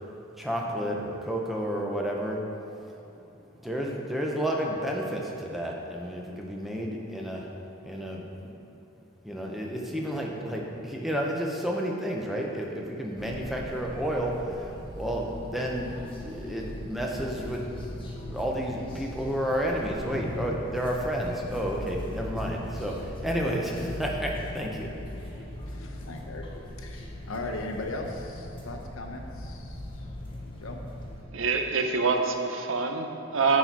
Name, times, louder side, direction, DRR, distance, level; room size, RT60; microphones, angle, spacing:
voice 1, 0.4-2.4 3.1-3.2 3.6-7.5 7.8-8.5 9.2-24.9, equal, ahead, -1 dB, 0.7 m, -31 dB
sound 1, 13.2-31.2, left 1 dB, 25° left, 0.9 m, -39 dB
voice 2, 25.7-26.4 26.8-30.1 30.6-30.8, left 2 dB, 80° left, 2 dB, 0.8 m, -38 dB
voice 3, 31.3-33.6, right 4 dB, 70° right, 5 dB, 0.6 m, -26 dB
9.9 x 4.2 x 4.6 m, 2.7 s
head